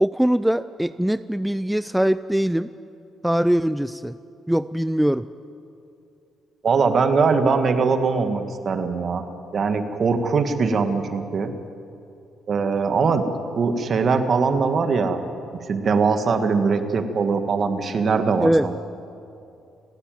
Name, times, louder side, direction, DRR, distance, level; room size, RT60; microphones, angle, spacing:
voice 1, 0.0-2.7 3.2-4.1 4.5-5.2 18.4-18.7, right 1 dB, 5° right, 13 dB, 0.4 m, -21 dB
voice 2, 6.6-9.2 9.5-11.5 12.5-13.3 13.6-15.2 15.7-18.7, right 5 dB, 50° right, 7 dB, 1.8 m, -21 dB
29.0 x 10.0 x 9.2 m, 2.6 s
cardioid pair, 90°, 0 cm